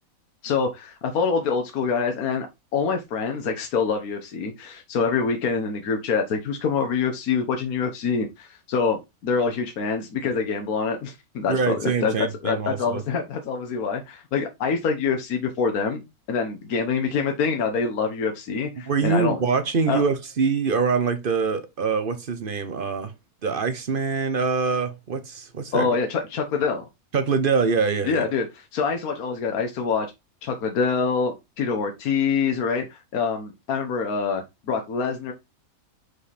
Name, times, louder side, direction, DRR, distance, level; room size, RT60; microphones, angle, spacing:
voice 1, 0.4-2.5 2.7-16.0 16.3-19.4 19.9-20.0 25.7-26.8 28.0-30.1 30.4-35.3, left 5 dB, 80° left, 1.4 m, -25 dB
voice 2, 11.5-13.0 18.8-23.1 23.4-25.9 27.1-28.3, right 5 dB, 45° right, 0.8 m, -24 dB
5.3 x 4.9 x 4.1 m
omnidirectional pair, 1.5 m